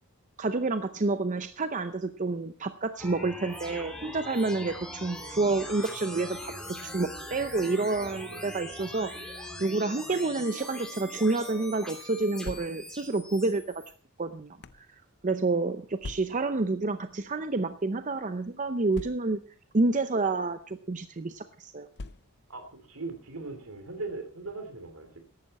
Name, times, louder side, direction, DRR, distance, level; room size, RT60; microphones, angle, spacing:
voice 1, 0.4-13.6 14.2-14.9 15.2-19.4 19.7-21.9, right 3 dB, 35° right, 10 dB, 0.6 m, -29 dB
sound 1, 3.0-13.9, left 1 dB, 5° left, 2.9 m, -42 dB
voice 2, 7.9-8.4 15.5-15.7 22.5-25.2, right 3 dB, 75° right, 8 dB, 3.0 m, -40 dB
sound 2, 12.4-13.1 13.9-14.9 16.0-16.6 17.5-17.7 17.9-18.0 18.9-19.6 20.5-20.7 21.9-22.6, left 2 dB, 50° left, 0.6 m, -43 dB
14.5 x 11.5 x 4.2 m, 0.38 s
head